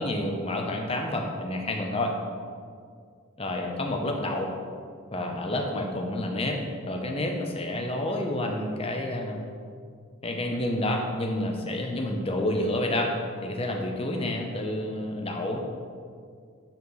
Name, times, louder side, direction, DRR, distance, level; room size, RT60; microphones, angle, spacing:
voice 1, 0.0-2.2 3.4-4.5 5.1-6.6 6.9-9.4 10.2-13.1 13.4-15.6, left 1 dB, 25° left, 2 dB, 0.8 m, -29 dB
9.5 x 4.4 x 5.4 m, 2.1 s
head